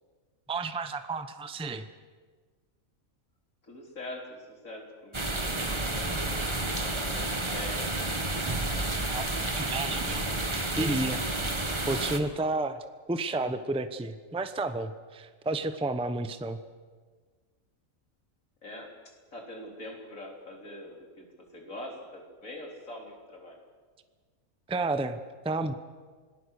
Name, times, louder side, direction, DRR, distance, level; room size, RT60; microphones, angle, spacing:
voice 1, 0.5-1.9 9.1-9.2 9.5-10.2 10.7-11.2 11.9-16.6 24.7-25.7, right 2 dB, 5° right, 9 dB, 0.7 m, -31 dB
voice 2, 3.6-6.4 6.8-7.9 18.6-23.6, left 1 dB, 75° left, 0 dB, 4.2 m, -44 dB
sound 1, 5.1-12.2, right 2 dB, 20° right, 1.5 m, -30 dB
27.0 x 19.5 x 6.6 m, 1.5 s
omnidirectional pair, 1.4 m